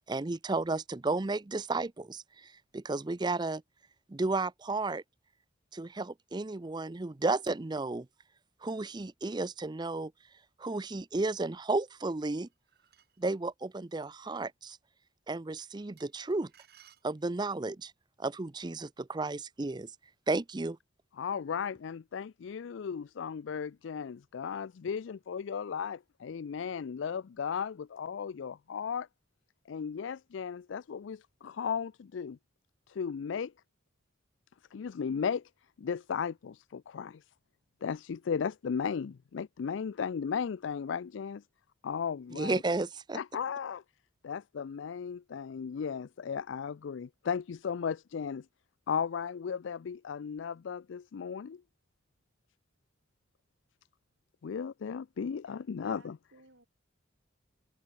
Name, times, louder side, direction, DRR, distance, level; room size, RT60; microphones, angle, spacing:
voice 1, 0.1-3.6 4.1-5.0 5.7-8.1 8.6-10.1 10.6-12.5 13.2-14.8 15.3-16.5 17.0-17.9 18.2-19.9 20.3-20.8 42.3-43.2, right 3 dB, 20° right, 0.5 m, -33 dB
sound 1, 12.2-13.3 16.0-17.6, right 10 dB, 50° right, 3.7 m, -62 dB
voice 2, 21.2-29.1 29.7-32.4 32.9-33.5 34.7-35.4 35.8-37.2 37.8-41.4 41.8-42.6 43.1-43.8 44.2-48.4 48.9-51.6 54.4-56.1, left 6 dB, 70° left, 0.4 m, -35 dB
voice 3, 55.4-56.7, right 2 dB, 70° right, 6.1 m, -60 dB
head